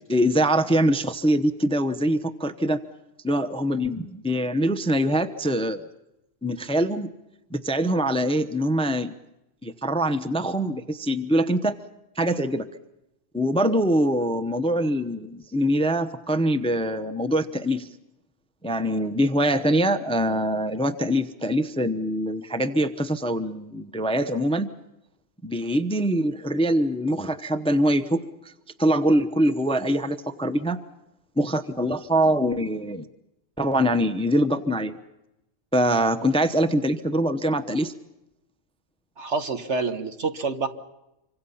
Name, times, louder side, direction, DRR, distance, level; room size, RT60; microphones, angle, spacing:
voice 1, 0.1-2.8 3.2-5.8 6.4-7.1 7.5-9.1 9.6-11.8 12.2-12.7 13.3-17.9 18.6-24.7 25.4-28.5 28.8-30.8 31.4-33.1 33.6-35.0 35.7-37.9, equal, 5° left, 10 dB, 0.7 m, -23 dB
voice 2, 39.2-40.7, right 4 dB, 60° right, 8 dB, 1.7 m, -27 dB
26.0 x 24.5 x 5.7 m, 0.92 s
omnidirectional pair, 1.3 m